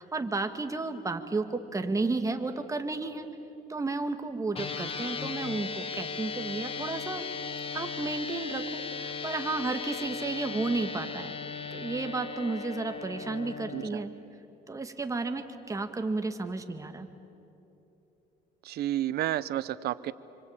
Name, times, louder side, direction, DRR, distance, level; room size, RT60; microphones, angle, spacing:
voice 1, 0.0-3.3 3.7-7.2 7.7-11.4 11.7-14.1 14.7-17.1, right 3 dB, 20° right, 6 dB, 1.9 m, -32 dB
sound 1, 4.5-13.9, left 5 dB, 35° left, 1.6 m, -37 dB
voice 2, 13.7-14.0 18.6-20.1, right 13 dB, 70° right, 16 dB, 0.9 m, -31 dB
27.0 x 25.0 x 8.8 m, 3.0 s
cardioid pair, 110°, 17 cm